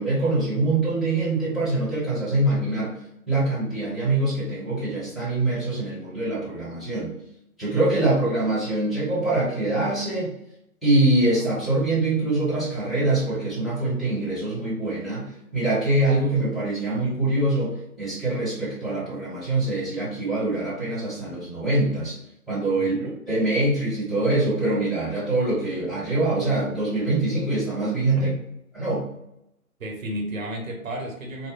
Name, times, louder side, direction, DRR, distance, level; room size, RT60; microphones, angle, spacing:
voice 1, 0.0-3.0 3.3-7.1 7.6-10.3 10.8-22.2 22.5-28.3 28.7-29.1, right 2 dB, ahead, -11 dB, 1.4 m, -24 dB
voice 2, 22.7-23.1 28.1-28.4 29.8-31.5, right 1 dB, 60° right, 1 dB, 1.2 m, -33 dB
4.6 x 2.1 x 3.9 m, 0.81 s
figure-of-eight pair, 125°, 45 cm